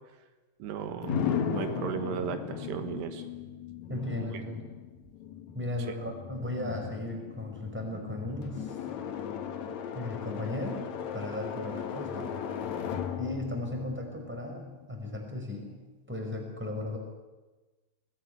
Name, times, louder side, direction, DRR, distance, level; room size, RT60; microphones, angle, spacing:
voice 1, 0.6-3.2 4.1-4.3, right 9 dB, 80° right, 8 dB, 3.6 m, -36 dB
sound 1, 1.0-14.9, left 7 dB, 55° left, 2.3 m, -37 dB
voice 2, 3.9-4.6 5.5-8.8 9.9-12.4 13.2-15.8 16.1-17.0, left 1 dB, 5° right, 2 dB, 4.7 m, -36 dB
22.5 x 18.5 x 9.8 m, 1.2 s
omnidirectional pair, 4.8 m